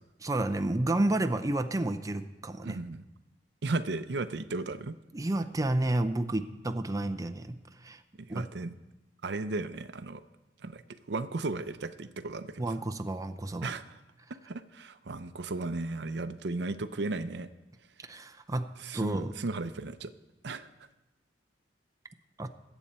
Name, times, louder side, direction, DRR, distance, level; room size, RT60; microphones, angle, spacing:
voice 1, 0.2-2.8 5.1-8.0 8.3-8.5 12.6-13.7 18.0-19.3 22.4-22.5, right 1 dB, 20° right, 8 dB, 0.5 m, -31 dB
voice 2, 2.6-3.0 3.6-4.9 8.2-8.7 9.2-10.2 10.6-10.8 11.1-12.7 13.6-14.0 14.5-17.5 18.8-20.1 20.4-20.7, right 3 dB, 65° right, 11 dB, 0.6 m, -35 dB
21.5 x 8.1 x 4.3 m, 1.0 s
head